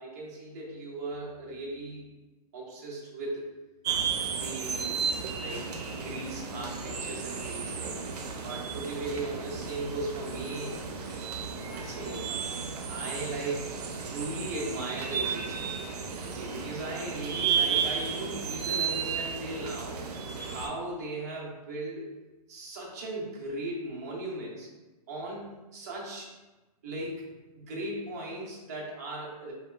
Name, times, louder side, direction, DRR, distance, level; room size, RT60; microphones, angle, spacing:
voice 1, 0.0-2.1 2.5-3.5 4.4-5.0 5.4-8.0 8.4-10.9 11.5-12.4 12.8-13.8 14.1-15.8 16.2-22.1 22.5-24.7 25.1-26.3 26.8-27.3 27.5-29.5, right 2 dB, 25° right, -4 dB, 0.4 m, -37 dB
sound 1, 3.8-20.7, right 6 dB, 90° right, 0.4 m, -33 dB
2.8 x 2.2 x 2.3 m, 1.1 s
hypercardioid pair, 175°, 20 cm